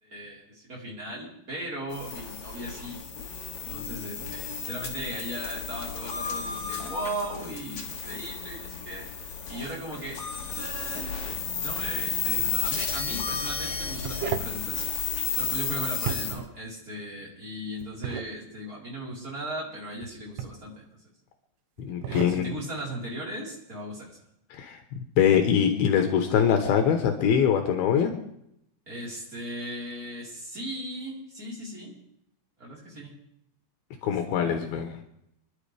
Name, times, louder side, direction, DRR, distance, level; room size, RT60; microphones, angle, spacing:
voice 1, 0.0-3.0 3.5-9.1 9.5-14.8 15.4-20.9 22.1-24.2 28.9-32.0 32.6-33.2 34.0-34.7, right 1 dB, 20° right, -5 dB, 4.5 m, -37 dB
sound 1, 1.9-16.4, left 6 dB, 50° left, 3.0 m, -33 dB
sound 2, 12.2-12.5 13.7-14.6 16.0-16.6 17.8-18.3 20.0-20.7 21.8-22.4, right 8 dB, 85° right, 2.9 m, -34 dB
voice 2, 21.8-22.5 24.5-24.8 25.2-28.1 34.0-34.9, left 8 dB, 80° left, 5 dB, 3.0 m, -23 dB
27.0 x 11.0 x 3.4 m, 0.77 s
omnidirectional pair, 4.4 m